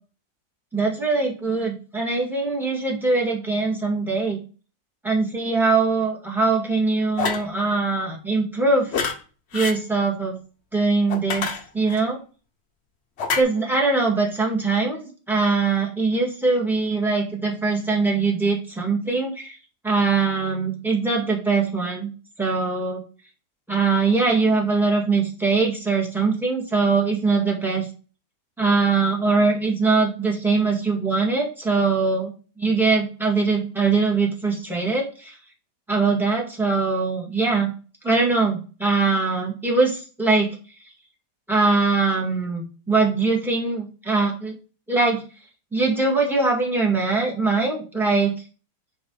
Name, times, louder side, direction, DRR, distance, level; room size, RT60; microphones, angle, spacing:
voice 1, 0.7-4.4 5.0-8.9 9.5-10.3 10.7-11.5 11.7-12.2 13.3-19.5 19.8-22.1 22.4-23.0 23.7-27.9 28.6-35.4 35.9-37.7 38.0-40.5 41.5-44.5 44.9-45.2 45.7-48.3, right 3 dB, ahead, 0 dB, 1.8 m, -22 dB
sound 1, 7.2-7.5 8.9-9.2 9.5-9.8 11.1-12.0 13.2-13.4, left 5 dB, 50° left, 0.9 m, -26 dB
6.7 x 3.6 x 5.5 m, 0.36 s
omnidirectional pair, 1.9 m